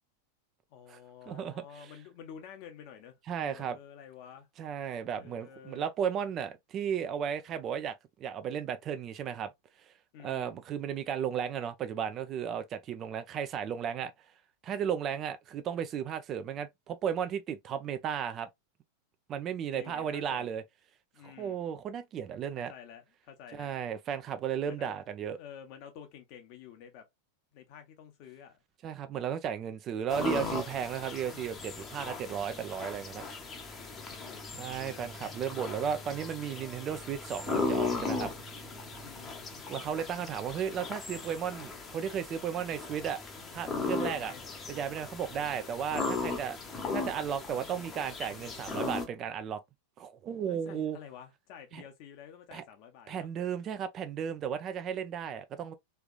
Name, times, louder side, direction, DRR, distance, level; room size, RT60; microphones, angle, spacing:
voice 1, 0.7-4.5 5.2-5.9 10.1-10.6 19.7-20.6 21.1-21.6 22.7-23.7 24.6-25.0 25.3-27.1 27.5-28.6 33.8-34.4 34.8-35.6 39.0-39.5 44.0-44.5 45.3-45.8 50.5-53.3, left 8 dB, 45° left, 1.1 m, -50 dB
voice 2, 1.3-1.6 3.3-3.8 4.6-9.5 10.2-14.1 14.6-18.5 19.3-20.6 21.2-22.7 23.5-25.4 28.8-33.2 34.6-38.3 39.7-43.2 43.5-44.3 44.7-46.6 46.9-49.6 50.0-51.0 51.7-51.8 52.5-52.6 53.1-55.7, right 8 dB, 30° right, 0.6 m, -34 dB
sound 1, 30.1-49.1, left 3 dB, 20° left, 1.0 m, -37 dB
3.4 x 3.3 x 2.5 m
figure-of-eight pair, 90°, 0 cm